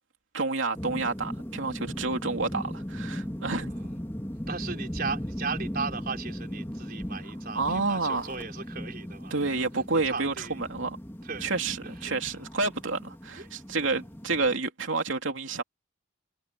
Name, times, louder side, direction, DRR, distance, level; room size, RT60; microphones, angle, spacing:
voice 1, 0.3-3.9 7.5-8.3 9.3-11.0 11.4-15.6, right 3 dB, 65° right, 3.2 m, -29 dB
sound 1, 0.7-14.6, equal, 10° left, 1.9 m, -38 dB
voice 2, 4.5-9.6 10.0-10.6 11.2-11.5 11.8-12.4 13.4-13.5, right 4 dB, 45° right, 4.9 m, -37 dB
head